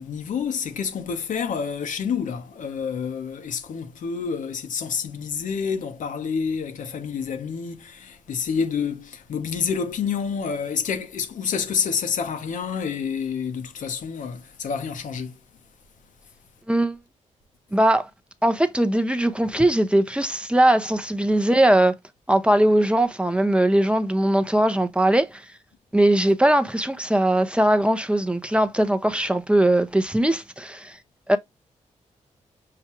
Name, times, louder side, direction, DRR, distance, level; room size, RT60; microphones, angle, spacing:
voice 1, 0.0-15.3, left 6 dB, 80° left, 0.8 m, -28 dB
voice 2, 17.7-18.1 18.4-21.9 22.3-25.4 25.9-31.0 31.3-31.4, right 1 dB, 10° right, 0.6 m, -20 dB
5.7 x 2.3 x 2.8 m
cardioid pair, 65°, 13 cm